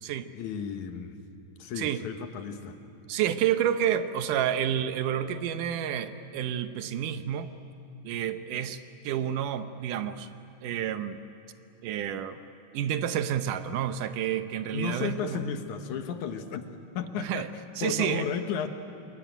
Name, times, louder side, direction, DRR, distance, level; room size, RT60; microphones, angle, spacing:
voice 1, 0.4-1.2 1.6-2.8 14.7-16.7 16.9-17.5 17.8-18.7, left 7 dB, 70° left, 7 dB, 2.5 m, -33 dB
voice 2, 3.1-7.5 8.0-10.3 10.6-11.2 11.8-12.4 12.7-15.4 17.2-17.5 17.8-18.3, right 10 dB, 80° right, 10 dB, 2.4 m, -29 dB
26.5 x 22.5 x 9.2 m, 2.7 s
omnidirectional pair, 3.8 m